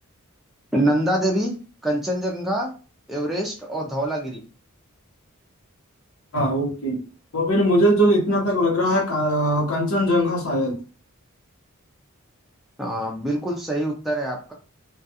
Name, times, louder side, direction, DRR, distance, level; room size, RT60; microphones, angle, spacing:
voice 1, 0.7-1.5 1.8-2.7 3.1-4.4 12.8-14.5, right 1 dB, ahead, -3 dB, 0.4 m, -25 dB
voice 2, 6.3-7.0 7.3-10.8, equal, 75° left, -3 dB, 0.9 m, -20 dB
2.3 x 2.3 x 2.7 m, 0.35 s
head